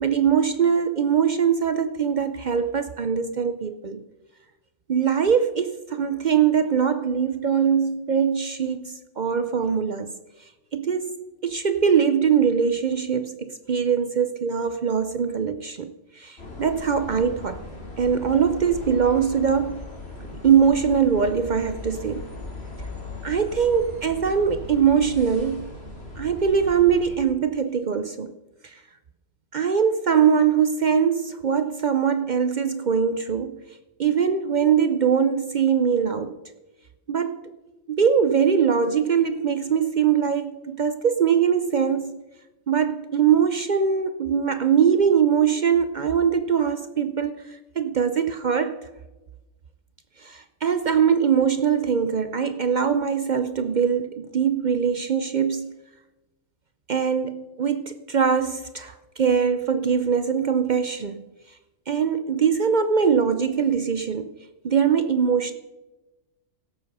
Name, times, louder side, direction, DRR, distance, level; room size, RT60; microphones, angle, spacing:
voice 1, 0.0-4.0 4.9-10.1 10.7-17.6 18.0-19.9 20.4-22.3 23.2-25.7 26.2-28.3 28.6-28.8 29.5-33.6 34.0-36.4 37.1-37.5 37.9-42.2 42.7-48.8 50.2-55.7 56.9-61.2 61.9-64.3 64.6-65.5, right 7 dB, 55° right, 0.5 m, -22 dB
sound 1, 16.4-27.2, left 3 dB, 50° left, 2.6 m, -38 dB
17.0 x 8.1 x 5.4 m
omnidirectional pair, 1.4 m